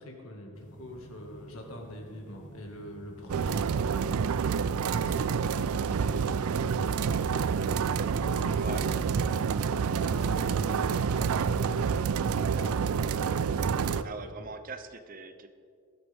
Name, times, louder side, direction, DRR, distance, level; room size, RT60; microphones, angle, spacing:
voice 1, 0.0-9.0 9.8-11.9 12.2-13.0 13.8-14.5, left 1 dB, 75° left, 1 dB, 1.9 m, -45 dB
sound 1, 0.5-13.8, left 1 dB, 35° left, 1.6 m, -52 dB
voice 2, 3.3-3.7 8.5-8.8 14.0-15.5, right 4 dB, 40° right, 9 dB, 0.6 m, -42 dB
sound 2, 3.3-14.0, right 6 dB, 80° right, 0.4 m, -28 dB
16.0 x 12.5 x 3.6 m, 2.4 s
head